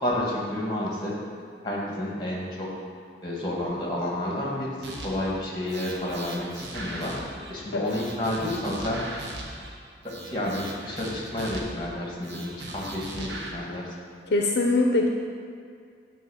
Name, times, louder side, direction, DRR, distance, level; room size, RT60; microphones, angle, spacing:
voice 1, 0.0-1.1 1.6-2.7 3.2-4.7 5.0-7.1 7.5-9.0 10.3-13.8, left 1 dB, 25° left, -3 dB, 1.4 m, -30 dB
sound 1, 4.8-5.3 5.7-7.5 7.8-9.7 10.0-11.9 12.2-13.5, right 2 dB, 75° right, 1.0 m, -39 dB
voice 2, 14.3-15.1, left 2 dB, 65° left, 2 dB, 0.5 m, -22 dB
8.8 x 3.0 x 6.3 m, 2.3 s
head